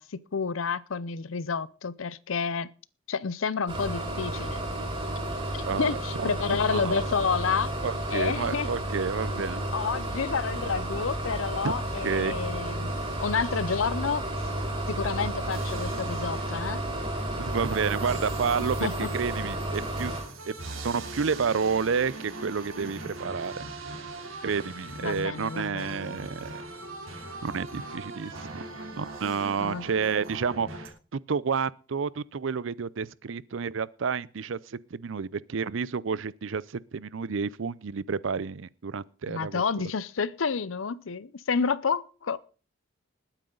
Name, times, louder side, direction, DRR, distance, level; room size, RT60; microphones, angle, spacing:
voice 1, 0.0-2.7 3.1-4.6 5.5-7.7 8.1-8.7 9.7-12.9 13.2-14.2 14.9-16.8 18.6-19.1 25.0-26.2 29.6-29.9 39.3-42.4, left 5 dB, 75° left, 0.6 m, -30 dB
sound 1, 3.7-20.2, right 1 dB, 25° right, 6.7 m, -32 dB
voice 2, 5.7-6.4 6.7-7.1 7.8-9.6 11.6-11.7 12.0-12.4 17.4-20.1 20.5-23.7 24.4-26.6 27.4-28.6 29.0-30.9 31.3-39.6, right 5 dB, 70° right, 0.5 m, -30 dB
sound 2, 15.5-30.9, right 2 dB, 85° right, 3.1 m, -41 dB
20.0 x 9.0 x 3.9 m
head